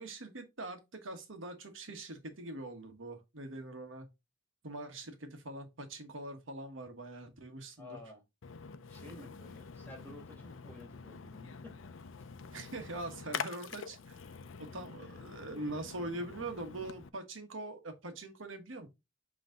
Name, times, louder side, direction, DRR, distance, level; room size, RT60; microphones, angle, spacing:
voice 1, 0.0-4.1 4.6-8.0 12.5-14.2 14.6-18.9, right 2 dB, 80° right, 1.3 m, -43 dB
voice 2, 7.8-8.2 8.8-11.8 13.1-13.2 15.1-15.2, left 2 dB, 10° left, 2.1 m, -52 dB
Splash splatter, 8.4-17.1, left 6 dB, 80° left, 0.6 m, -46 dB
7.8 x 3.2 x 3.8 m
head